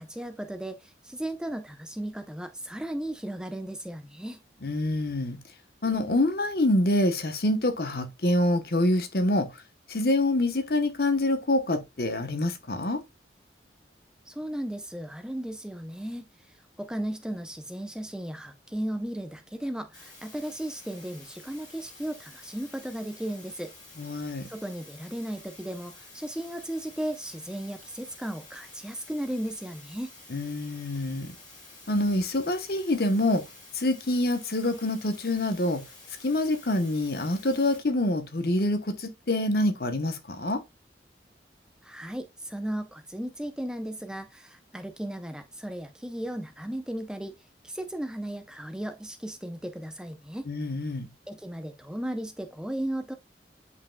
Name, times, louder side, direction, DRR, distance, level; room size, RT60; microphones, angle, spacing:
voice 1, 0.0-4.4 14.3-23.7 24.5-30.1 41.8-47.3 47.6-50.5 51.3-53.1, right 1 dB, 5° right, 0.6 m, -35 dB
voice 2, 4.6-5.4 5.8-9.5 9.9-13.0 24.0-24.5 30.3-31.4 31.9-33.4 33.7-35.8 36.2-40.6 50.5-51.1, left 1 dB, 55° left, 1.0 m, -26 dB
sound 1, 19.9-37.8, left 2 dB, 25° left, 3.5 m, -50 dB
8.2 x 5.5 x 2.2 m
head